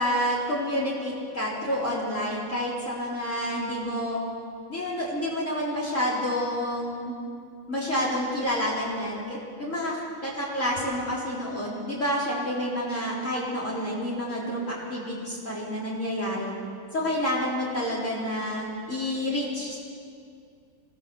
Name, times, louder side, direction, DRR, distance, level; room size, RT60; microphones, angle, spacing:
voice 1, 0.0-4.2 4.7-7.1 7.7-16.5 16.9-19.8, equal, 35° left, -5 dB, 4.6 m, -29 dB
26.0 x 17.0 x 7.1 m, 2.3 s
omnidirectional pair, 2.2 m